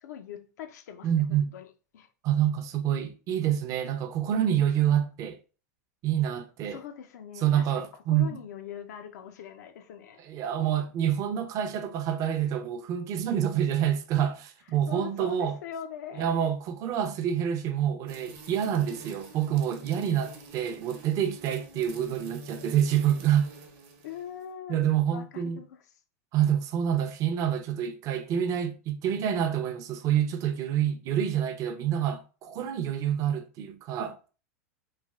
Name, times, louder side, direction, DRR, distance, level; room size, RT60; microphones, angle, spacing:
voice 1, 0.0-2.1 6.7-10.2 14.7-16.5 21.7-22.0 24.0-25.9, left 9 dB, 80° left, 0.4 m, -42 dB
voice 2, 1.0-1.5 2.2-5.4 6.0-6.8 7.4-8.4 10.2-15.6 16.2-23.5 24.7-25.6 26.3-34.3, right 10 dB, 40° right, 0.5 m, -27 dB
sound 1, 18.1-24.4, right 2 dB, 55° right, 0.8 m, -47 dB
3.2 x 2.3 x 2.2 m
hypercardioid pair, 120°, 9 cm